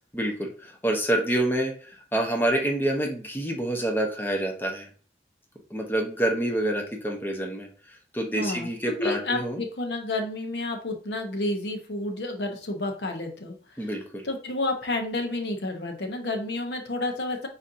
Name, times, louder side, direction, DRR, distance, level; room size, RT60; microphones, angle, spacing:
voice 1, 0.1-4.9 5.7-7.7 8.1-9.6 13.8-14.2, right 1 dB, 10° left, 1 dB, 0.7 m, -27 dB
voice 2, 8.4-8.7 9.0-13.6 14.2-17.5, left 2 dB, 70° left, 4 dB, 0.8 m, -30 dB
4.2 x 4.0 x 2.6 m, 0.44 s
head